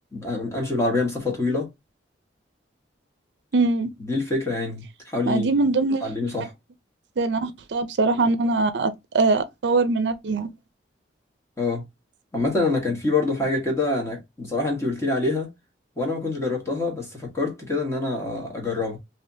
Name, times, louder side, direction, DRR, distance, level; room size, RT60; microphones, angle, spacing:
voice 1, 0.1-1.7 4.0-5.5 6.0-6.5 11.6-11.8 12.3-15.5 16.0-19.0, left 3 dB, 15° left, 1.3 m, -26 dB
voice 2, 3.5-3.9 5.3-6.0 7.2-10.5, right 3 dB, 70° right, 0.5 m, -22 dB
3.3 x 2.9 x 2.7 m
head